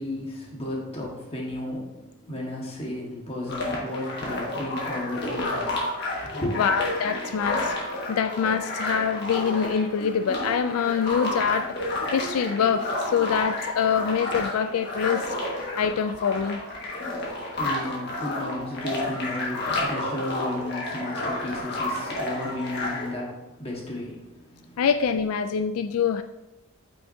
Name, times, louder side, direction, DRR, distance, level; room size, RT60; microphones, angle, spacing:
voice 1, 0.0-5.6 6.2-6.7 17.5-24.8, left 1 dB, 25° left, -3 dB, 1.5 m, -33 dB
sound 1, 3.5-23.1, left 2 dB, 50° left, 1.7 m, -31 dB
voice 2, 6.6-7.7 8.1-11.8 12.1-15.3 15.8-16.6 24.8-26.2, left 7 dB, 80° left, 9 dB, 0.3 m, -25 dB
8.6 x 5.7 x 2.7 m, 0.96 s
head